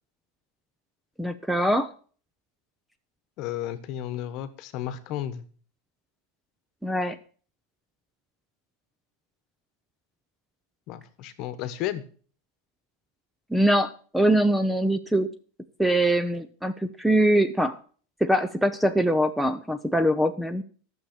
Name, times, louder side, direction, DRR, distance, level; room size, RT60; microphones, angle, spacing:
voice 1, 1.2-1.9 6.8-7.2 13.5-15.3 15.8-17.8 18.2-20.6, right 1 dB, ahead, 10 dB, 0.6 m, -23 dB
voice 2, 3.4-5.4 10.9-12.0, left 11 dB, 45° left, 12 dB, 1.2 m, -33 dB
11.5 x 7.0 x 6.6 m, 0.43 s
supercardioid pair, 150°, 0 cm